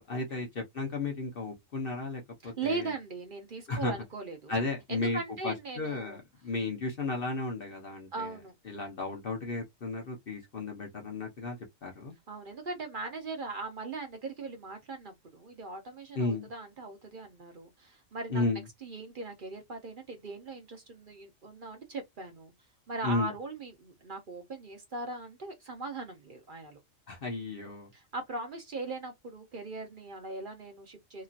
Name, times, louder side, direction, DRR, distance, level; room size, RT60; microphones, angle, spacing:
voice 1, 0.0-2.8 3.7-3.9 4.5-8.3 8.7-12.1 16.1-16.5 18.3-18.6 23.0-23.3 27.1-27.9, left 3 dB, 50° left, 1.0 m, -34 dB
voice 2, 2.4-4.6 4.9-6.2 8.1-8.5 12.3-18.4 18.8-22.5 22.9-26.8 27.9-31.2, right 3 dB, 50° right, 0.8 m, -39 dB
2.9 x 2.7 x 2.4 m
omnidirectional pair, 1.3 m